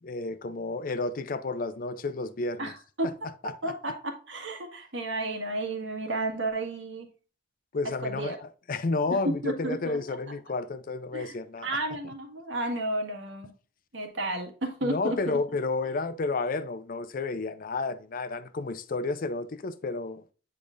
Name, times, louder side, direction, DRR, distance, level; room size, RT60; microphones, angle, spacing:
voice 1, 0.0-2.7 3.4-3.7 7.7-11.7 14.8-20.2, left 3 dB, 50° left, 0.5 m, -31 dB
voice 2, 3.0-7.1 8.0-8.4 9.1-10.2 11.1-11.3 11.6-13.5 13.9-15.4, right 2 dB, 85° right, 1.6 m, -32 dB
8.8 x 4.9 x 2.5 m
head